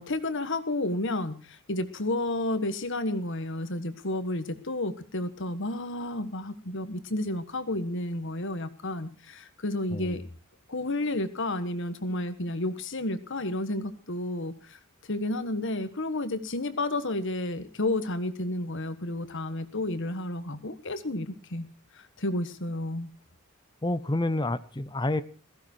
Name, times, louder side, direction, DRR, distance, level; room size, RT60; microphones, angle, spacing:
voice 1, 0.0-10.2 10.7-14.8 15.1-21.7 21.9-23.1, left 2 dB, 60° left, 1.5 m, -31 dB
voice 2, 9.9-10.2 23.8-25.2, left 2 dB, 20° left, 0.7 m, -29 dB
17.0 x 15.5 x 4.5 m
head